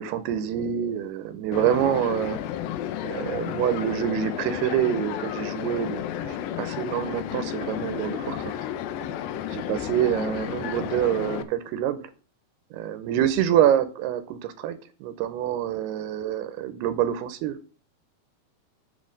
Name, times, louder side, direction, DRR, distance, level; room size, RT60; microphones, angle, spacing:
voice 1, 0.0-2.4 3.0-8.6 9.5-12.0 12.7-17.6, right 10 dB, 85° right, 12 dB, 2.6 m, -26 dB
sound 1, 1.5-11.4, left 10 dB, 85° left, 2.1 m, -32 dB
9.6 x 3.8 x 6.6 m, 0.37 s
omnidirectional pair, 4.8 m